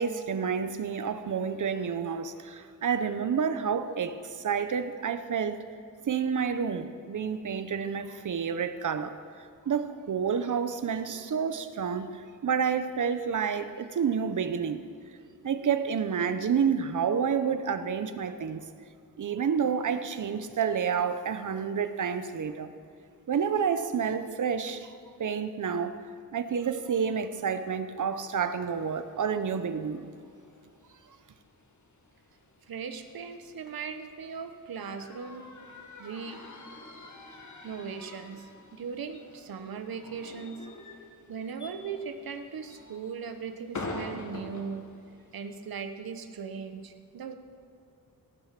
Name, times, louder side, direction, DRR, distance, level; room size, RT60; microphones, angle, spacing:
voice 1, 0.0-5.6 6.1-9.2 9.7-14.9 15.4-18.6 19.2-22.7 23.3-24.9 25.2-26.0 26.3-30.1, right 6 dB, 60° right, 11 dB, 0.8 m, -29 dB
sound 1, 28.7-45.9, left 2 dB, 55° left, 1.7 m, -47 dB
voice 2, 32.7-35.4 36.0-36.4 37.6-40.7 41.3-44.9 45.3-47.3, right 6 dB, 80° right, 8 dB, 1.1 m, -38 dB
17.5 x 9.2 x 5.9 m, 2.4 s
wide cardioid pair, 165°, 35 cm